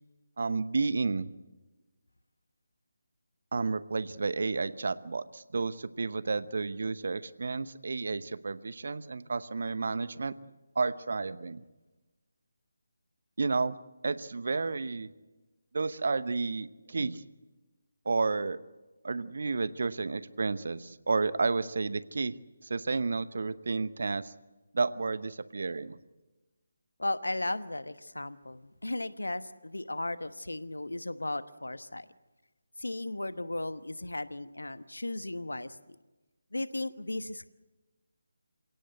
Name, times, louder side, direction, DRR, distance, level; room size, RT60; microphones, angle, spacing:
voice 1, 0.4-1.3 3.5-10.3 10.7-11.6 13.4-13.8 14.0-15.1 15.7-17.2 18.0-18.6 19.0-22.4 22.6-24.3 24.7-26.0, right 4 dB, 55° right, 15 dB, 0.9 m, -31 dB
voice 2, 27.0-32.1 32.8-35.8 36.5-37.5, left 2 dB, 75° left, 13 dB, 1.1 m, -35 dB
27.5 x 17.5 x 8.0 m, 1.2 s
figure-of-eight pair, 150°, 0 cm